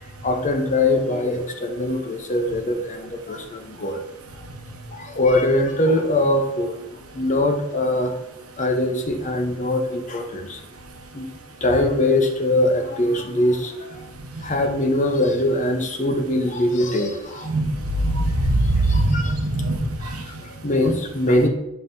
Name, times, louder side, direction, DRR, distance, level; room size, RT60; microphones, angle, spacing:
voice 1, 0.2-4.0 4.9-6.8 7.1-8.2 8.6-10.6 11.1-11.3 11.6-14.0 14.4-17.5 18.9-19.3 20.0-21.5, left 1 dB, 35° left, 4 dB, 0.8 m, -22 dB
voice 2, 18.0-19.8 20.0-20.2, right 2 dB, 75° right, 4 dB, 1.0 m, -21 dB
8.9 x 5.6 x 2.7 m, 0.91 s
head